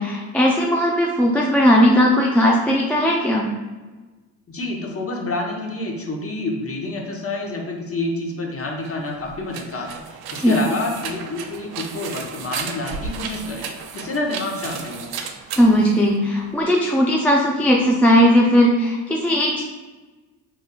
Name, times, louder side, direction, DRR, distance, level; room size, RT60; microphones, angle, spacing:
voice 1, 0.0-3.5 10.4-10.6 15.6-19.6, equal, 5° left, -2 dB, 0.3 m, -17 dB
voice 2, 4.5-13.7 13.9-15.1, left 2 dB, 30° left, 1 dB, 0.9 m, -28 dB
sound 1, 8.8-16.6, right 6 dB, 50° right, 0.5 m, -34 dB
3.6 x 3.1 x 2.3 m, 1.2 s
hypercardioid pair, 60°, 48 cm